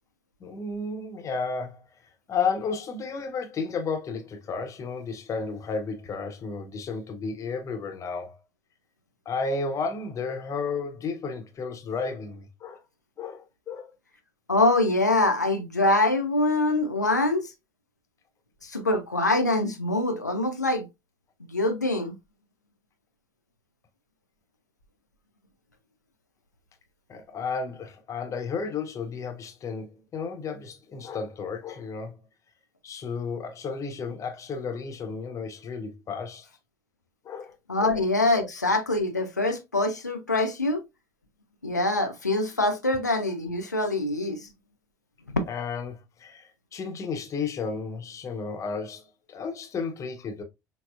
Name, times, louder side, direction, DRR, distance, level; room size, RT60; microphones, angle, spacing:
voice 1, 0.4-1.9 2.3-8.4 9.3-12.8 13.2-13.9 27.1-32.2 32.8-36.5 37.2-37.6 37.8-38.0 38.3-38.5 45.5-50.4, left 4 dB, 35° left, 0.8 m, -33 dB
voice 2, 14.5-17.4 18.6-20.9 21.5-22.1 37.7-40.8 41.6-44.4 45.3-45.4, left 2 dB, 85° left, 0.5 m, -24 dB
5.9 x 2.0 x 2.4 m
figure-of-eight pair, 60°, 9 cm